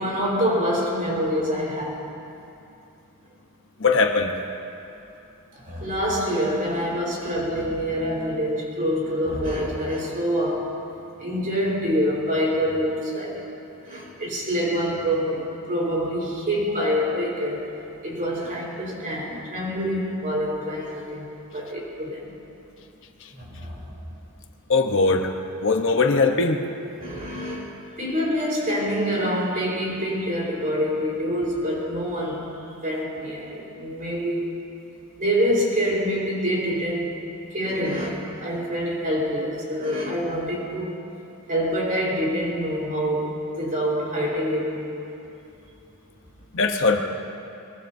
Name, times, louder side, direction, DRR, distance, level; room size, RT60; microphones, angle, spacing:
voice 1, 0.0-2.1 5.6-10.7 11.2-13.4 13.8-17.7 18.0-22.3 23.3-23.9 27.0-27.7 28.0-32.5 32.7-34.5 35.2-37.2 37.5-40.9 41.5-45.1, equal, 40° right, -3 dB, 4.4 m, -26 dB
voice 2, 3.8-4.3 24.7-25.3 25.6-26.6 46.5-47.0, left 4 dB, 60° left, 4 dB, 1.0 m, -20 dB
22.5 x 22.0 x 2.7 m, 2.8 s
head